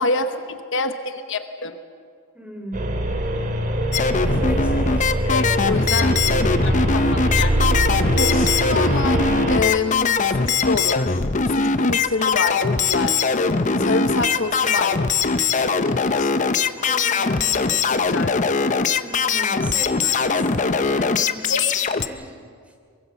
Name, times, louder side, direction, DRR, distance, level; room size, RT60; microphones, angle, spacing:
voice 1, 0.0-1.8 5.3-7.5 8.1-13.2 13.8-15.2 15.6-16.3 17.9-18.4 20.8-21.1 21.5-21.7, left 3 dB, 60° left, 8 dB, 1.1 m, -27 dB
voice 2, 2.3-3.1 4.1-6.0 13.3-14.1 16.8-17.8 19.0-22.3, right 1 dB, 5° right, 2 dB, 3.3 m, -37 dB
sound 1, 2.7-9.6, right 1 dB, 40° right, 2.2 m, -22 dB
sound 2, 3.9-22.1, left 4 dB, 35° left, 0.7 m, -21 dB
23.5 x 22.0 x 7.1 m, 2.2 s
head